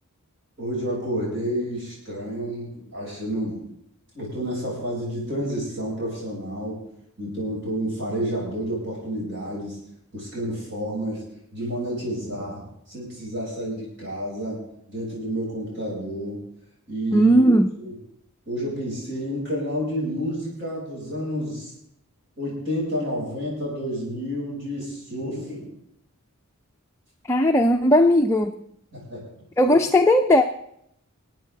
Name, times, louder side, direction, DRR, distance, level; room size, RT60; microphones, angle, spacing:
voice 1, 0.6-3.7 4.1-6.8 7.2-9.8 10.1-11.2 11.5-14.6 14.9-16.4 16.9-17.4 17.8-17.9 18.5-21.7 22.4-25.7 28.9-29.3 29.6-29.8, equal, 55° right, -5 dB, 7.9 m, -30 dB
voice 2, 17.1-17.7 27.3-28.6 29.6-30.4, equal, 15° left, 3 dB, 0.5 m, -17 dB
25.5 x 9.1 x 4.0 m, 0.74 s
head